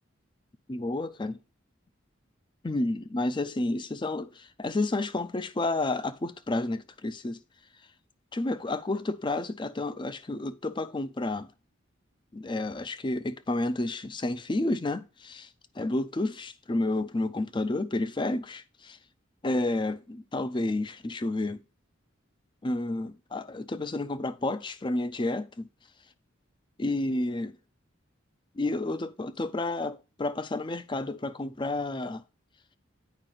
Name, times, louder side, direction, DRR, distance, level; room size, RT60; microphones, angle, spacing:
voice 1, 0.7-1.4 2.6-7.4 8.3-11.5 12.3-15.5 15.8-19.0 19.4-21.6 22.6-25.7 26.8-27.6 28.6-32.2, left 2 dB, 25° left, 0.5 m, -30 dB
9.2 x 5.0 x 3.8 m
head